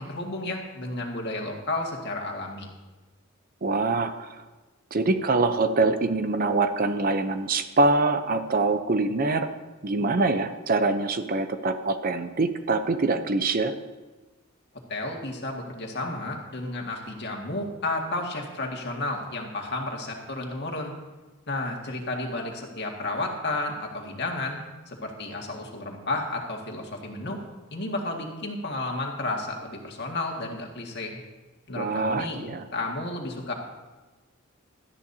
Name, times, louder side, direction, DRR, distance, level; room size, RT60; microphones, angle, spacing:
voice 1, 0.0-2.7 14.9-20.9 21.5-27.4 27.7-31.2 31.7-32.4 32.7-33.5, left 2 dB, 50° left, 1 dB, 1.9 m, -32 dB
voice 2, 3.6-4.4 4.9-9.5 9.8-13.7 31.7-32.6, right 3 dB, 40° right, 9 dB, 0.6 m, -24 dB
17.5 x 13.0 x 2.8 m, 1.2 s
head